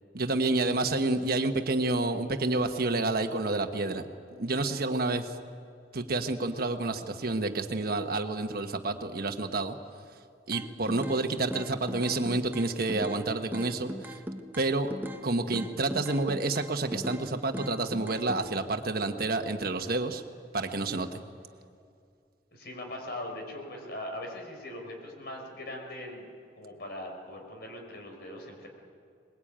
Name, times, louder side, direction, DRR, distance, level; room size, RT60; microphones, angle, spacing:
voice 1, 0.1-4.0 4.4-5.4 5.9-9.8 10.5-14.2 14.6-14.9 15.2-20.2 20.5-21.2, right 2 dB, 60° right, 6 dB, 1.3 m, -29 dB
sound 1, 10.5-11.2 11.5-13.2 13.5-15.2 15.5-17.2 17.5-18.4, equal, 10° right, 1.1 m, -38 dB
voice 2, 22.5-26.3 26.6-28.7, left 1 dB, 65° left, 2 dB, 5.1 m, -40 dB
23.0 x 21.5 x 8.9 m, 2.4 s
head